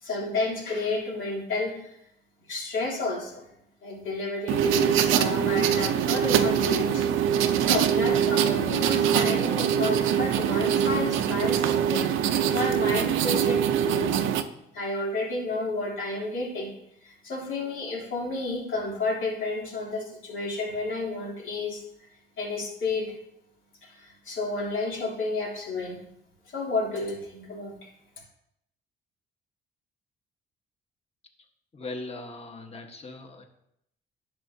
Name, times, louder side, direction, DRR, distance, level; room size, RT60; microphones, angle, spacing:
voice 1, 0.0-2.0 2.5-3.5 3.8-7.1 7.6-14.2 14.7-16.7 17.0-22.1 22.4-23.1 23.8-26.0 26.5-27.7, left 3 dB, 80° left, -4 dB, 3.1 m, -31 dB
sound 1, 4.5-14.4, right 9 dB, 85° right, 0.6 m, -23 dB
voice 2, 31.7-33.4, left 2 dB, 30° left, 4 dB, 1.3 m, -39 dB
10.5 x 6.9 x 2.7 m, 0.78 s
cardioid pair, 90°, 20 cm